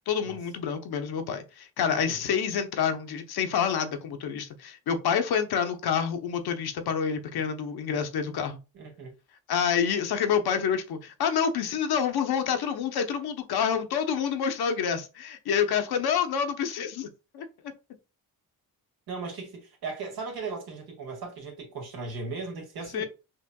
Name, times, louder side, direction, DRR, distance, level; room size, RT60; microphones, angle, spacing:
voice 1, 0.0-8.6 9.5-17.5 22.9-23.1, left 7 dB, 80° left, 0.9 m, -28 dB
voice 2, 1.8-2.3 8.7-9.1 19.1-23.1, right 4 dB, 75° right, 2.0 m, -37 dB
5.6 x 3.0 x 2.3 m
cardioid pair, 110°, 37 cm